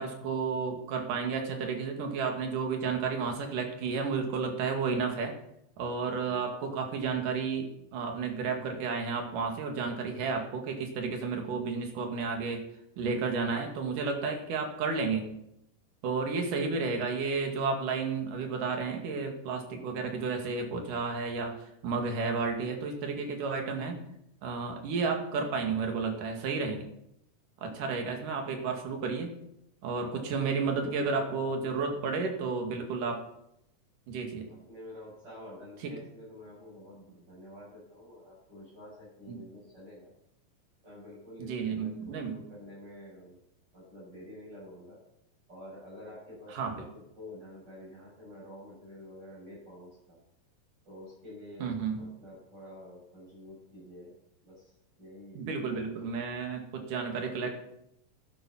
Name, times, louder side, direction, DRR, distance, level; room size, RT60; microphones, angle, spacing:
voice 1, 0.0-5.3 5.8-12.6 13.0-15.3 16.0-24.0 24.4-26.9 27.6-29.4 29.8-33.2 34.1-34.5 35.8-35.9 39.3-39.4 41.4-42.4 46.5-46.8 51.6-52.1 55.3-57.5, right 4 dB, 65° right, 3 dB, 3.5 m, -32 dB
voice 2, 30.3-32.3 34.4-40.1 40.8-43.4 43.7-45.0 45.5-50.2 50.8-54.1 54.4-55.4 55.7-55.8 56.0-56.3, left 1 dB, 30° right, -6 dB, 7.5 m, -49 dB
11.5 x 11.0 x 5.8 m, 0.78 s
omnidirectional pair, 4.1 m